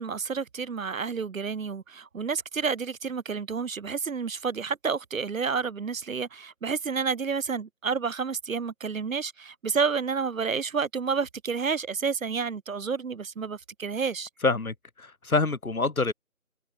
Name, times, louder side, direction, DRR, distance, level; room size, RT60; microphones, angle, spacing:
voice 1, 0.0-14.3, right 5 dB, 65° right, 0.6 m, -30 dB
voice 2, 14.4-16.1, left 3 dB, 75° left, 1.6 m, -26 dB
figure-of-eight pair, 175°, 43 cm